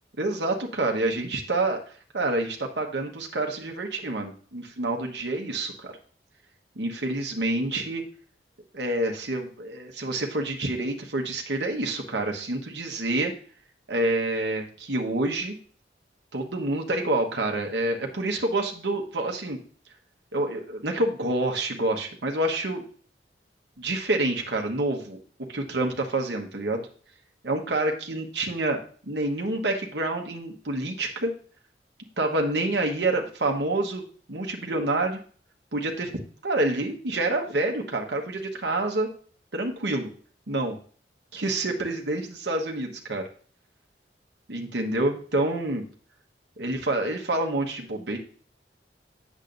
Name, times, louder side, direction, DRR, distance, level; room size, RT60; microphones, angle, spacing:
voice 1, 0.2-1.8 2.1-5.9 6.8-8.0 8.7-13.3 13.9-15.5 16.3-19.6 20.3-22.8 23.8-25.2 25.5-26.9 27.4-28.8 29.1-31.3 32.2-34.0 34.3-35.2 35.7-36.1 36.4-39.1 39.5-40.1 40.5-40.8 41.3-43.2 44.5-45.8 46.6-48.2, right 2 dB, 75° right, 2 dB, 1.2 m, -27 dB
8.5 x 7.3 x 2.6 m, 0.43 s
head